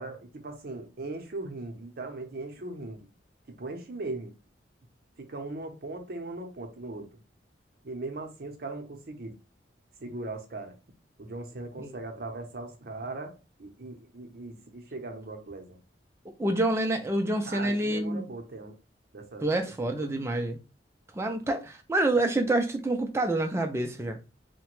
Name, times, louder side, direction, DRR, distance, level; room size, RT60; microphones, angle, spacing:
voice 1, 0.0-3.1 3.5-4.3 5.2-7.1 7.8-9.3 10.0-10.8 11.2-15.8 17.5-18.7 19.1-19.5 20.0-20.2, right 2 dB, 55° right, 0.6 m, -39 dB
voice 2, 16.4-18.3 19.4-20.6 21.1-24.2, right 1 dB, 15° right, 0.3 m, -27 dB
2.8 x 2.1 x 3.0 m
head